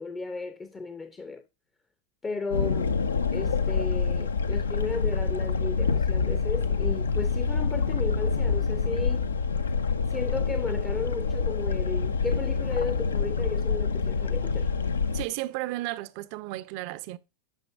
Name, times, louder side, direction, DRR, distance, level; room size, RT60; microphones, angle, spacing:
voice 1, 0.0-1.4 2.2-2.9 3.3-9.3 10.1-14.7, left 4 dB, 20° left, 0.5 m, -34 dB
sound 1, 2.5-15.2, left 5 dB, 85° left, 0.4 m, -26 dB
voice 2, 15.1-17.2, right 17 dB, 55° right, 0.3 m, -33 dB
8.9 x 5.2 x 2.4 m
hypercardioid pair, 95°, 0 cm